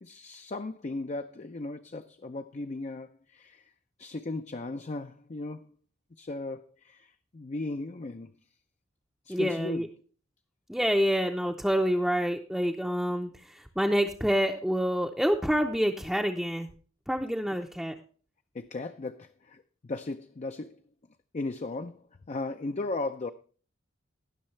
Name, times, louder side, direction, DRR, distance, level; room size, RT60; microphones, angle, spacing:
voice 1, 0.0-3.7 4.0-5.7 6.2-8.3 9.3-9.9 18.5-20.8 21.3-23.3, left 2 dB, 35° left, 0.5 m, -36 dB
voice 2, 9.3-9.9 10.7-16.7 17.1-17.9, equal, 5° right, 0.6 m, -27 dB
19.0 x 6.4 x 3.2 m
head